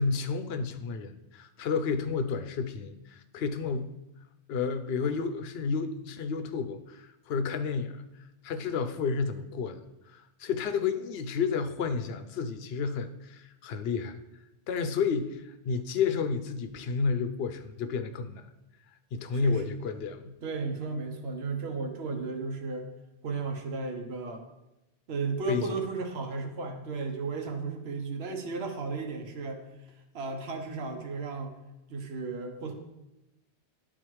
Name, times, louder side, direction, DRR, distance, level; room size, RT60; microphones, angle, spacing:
voice 1, 0.0-3.9 4.5-8.0 8.4-9.8 10.1-14.2 14.7-18.4 19.1-20.3 25.5-25.7, left 5 dB, 75° left, 10 dB, 0.8 m, -31 dB
voice 2, 19.4-19.8 20.4-22.9 23.2-24.5 25.1-29.7 30.1-31.6 31.9-32.7, right 4 dB, 75° right, 5 dB, 1.1 m, -34 dB
11.0 x 3.9 x 3.1 m, 0.93 s
omnidirectional pair, 1.1 m